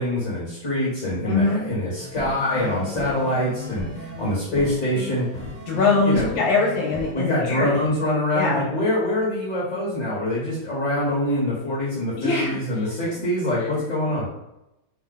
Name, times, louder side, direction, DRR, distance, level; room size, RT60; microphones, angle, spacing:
voice 1, 0.0-5.3 6.0-6.3 7.1-14.3, left 1 dB, 45° left, -7 dB, 2.0 m, -25 dB
voice 2, 1.2-1.6 5.7-7.8 8.3-8.7 12.2-12.6 13.7-13.8, left 3 dB, 70° left, -3 dB, 1.8 m, -22 dB
sound 1, 2.0-7.1, left 1 dB, 10° right, 0.6 m, -35 dB
4.0 x 2.9 x 3.9 m, 0.90 s
omnidirectional pair, 2.2 m